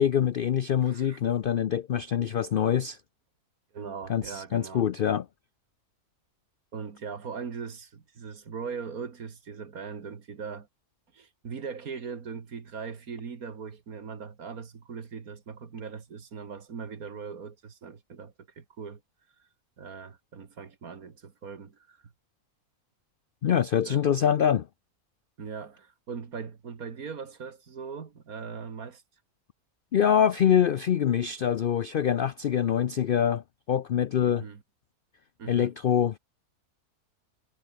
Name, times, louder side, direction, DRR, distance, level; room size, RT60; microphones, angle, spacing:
voice 1, 0.0-3.0 4.1-5.3 23.4-24.7 29.9-34.4 35.5-36.2, left 9 dB, 70° left, 0.5 m, -25 dB
voice 2, 0.8-1.2 3.7-4.8 6.7-10.7 11.1-19.0 19.8-22.1 23.8-24.0 25.4-29.0 34.3-34.6 35.4-35.7, right 6 dB, 70° right, 2.3 m, -40 dB
omnidirectional pair, 1.6 m